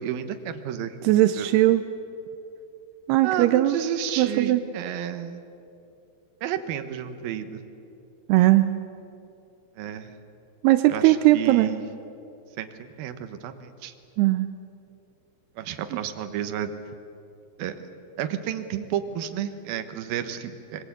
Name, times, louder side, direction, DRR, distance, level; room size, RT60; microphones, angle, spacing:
voice 1, 0.0-1.0 1.4-1.5 3.2-5.4 6.4-7.7 9.8-10.1 10.9-11.8 12.6-13.9 15.6-16.7 17.6-17.8 18.2-20.9, right 10 dB, 70° right, 8 dB, 2.5 m, -31 dB
voice 2, 1.0-1.8 3.1-3.8 4.2-4.6 8.3-8.7 10.6-11.7 14.2-14.5, right 15 dB, 85° right, 10 dB, 2.3 m, -19 dB
25.0 x 22.0 x 8.4 m, 2.7 s
omnidirectional pair, 5.4 m